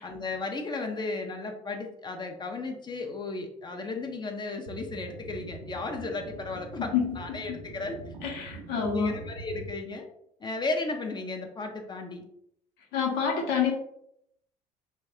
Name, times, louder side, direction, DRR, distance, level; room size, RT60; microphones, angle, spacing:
voice 1, 0.0-8.1 8.7-10.0 10.4-12.2, left 3 dB, 20° left, 3 dB, 0.4 m, -35 dB
sound 1, 4.7-9.7, right 3 dB, 60° right, 0.5 m, -43 dB
voice 2, 8.2-9.1 12.9-13.7, left 7 dB, 55° left, 0 dB, 0.7 m, -27 dB
2.3 x 2.2 x 3.5 m, 0.74 s
figure-of-eight pair, 60°, 21 cm